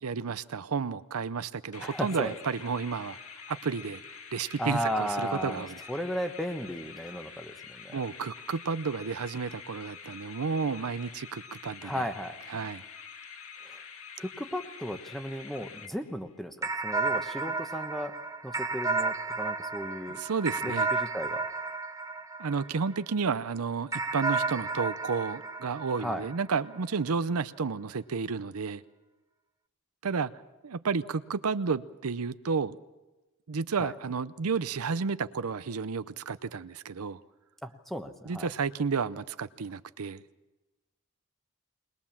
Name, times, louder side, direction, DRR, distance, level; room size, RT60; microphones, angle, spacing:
voice 1, 0.0-3.2 3.5-4.0 4.3-5.8 7.9-12.0 12.5-12.8 20.1-20.9 22.4-28.8 30.0-30.3 30.6-32.8 33.5-37.2 38.3-40.2, right 5 dB, 80° right, 14 dB, 0.6 m, -31 dB
sound 1, 1.7-16.4, left 6 dB, 70° left, 1.9 m, -47 dB
voice 2, 1.8-2.3 4.6-8.0 11.8-12.4 13.6-13.8 14.2-18.2 18.4-20.2 20.6-20.7 21.0-21.4 26.0-26.3 33.8-33.9 37.6-38.5, equal, ahead, 7 dB, 1.1 m, -35 dB
sound 2, 16.6-23.2 23.9-26.7, right 3 dB, 15° right, 0.9 m, -32 dB
21.5 x 21.0 x 7.3 m, 1.1 s
head